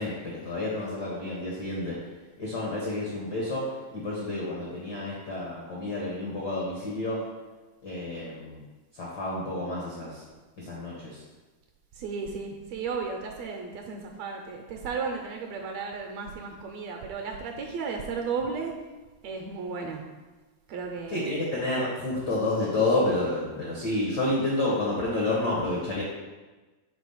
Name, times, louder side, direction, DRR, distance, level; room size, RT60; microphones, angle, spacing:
voice 1, 0.0-1.9 2.4-7.2 7.8-8.6 8.9-10.2 10.6-11.2 21.1-26.0, left 2 dB, 70° left, -5 dB, 0.9 m, -29 dB
voice 2, 12.0-18.7 19.2-20.0 20.7-21.4, right 5 dB, 75° right, 3 dB, 1.7 m, -34 dB
4.9 x 4.0 x 5.4 m, 1.2 s
omnidirectional pair, 3.4 m